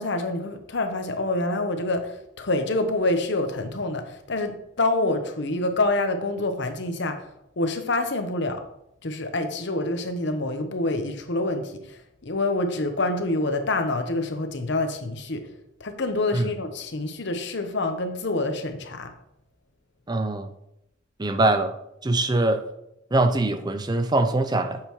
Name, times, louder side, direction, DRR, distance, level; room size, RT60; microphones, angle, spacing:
voice 1, 0.0-7.2 7.6-8.6 9.0-15.5 15.8-19.1, left 2 dB, 60° left, 7 dB, 1.0 m, -27 dB
voice 2, 20.1-20.5 21.2-21.7 22.0-22.6 23.1-24.8, right 2 dB, 20° right, 9 dB, 0.5 m, -22 dB
8.6 x 6.7 x 3.1 m, 0.81 s
head